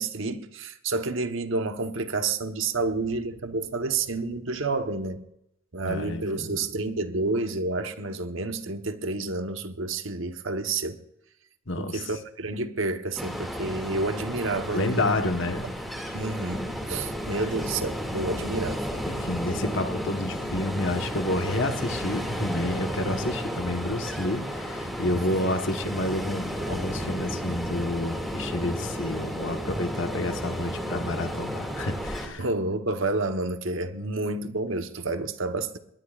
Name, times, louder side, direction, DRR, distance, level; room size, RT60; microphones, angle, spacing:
voice 1, 0.0-5.2 5.7-11.0 11.8-15.2 16.1-18.9 25.3-25.5 32.4-35.8, right 3 dB, 65° right, 1.1 m, -29 dB
voice 2, 5.8-6.6 11.7-12.1 14.7-15.7 17.3-17.4 19.1-32.4, left 1 dB, 60° left, 1.3 m, -29 dB
Ocean, 13.1-32.3, equal, ahead, 2.3 m, -33 dB
22.0 x 18.5 x 2.5 m
head